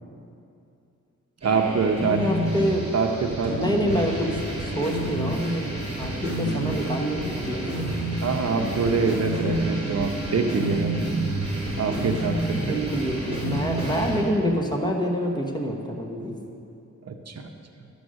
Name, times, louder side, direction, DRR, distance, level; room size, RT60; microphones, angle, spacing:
sound 1, 1.4-14.2, right 1 dB, 20° right, 3.1 m, -29 dB
voice 1, 1.4-2.2 2.9-3.9 8.2-11.2 11.8-12.8 17.0-17.5, right 4 dB, 55° right, 4 dB, 0.8 m, -25 dB
voice 2, 2.0-2.9 3.5-7.8 12.6-16.3, equal, 15° left, 0 dB, 1.2 m, -27 dB
12.0 x 7.1 x 6.4 m, 2.6 s
wide cardioid pair, 130°, 30 cm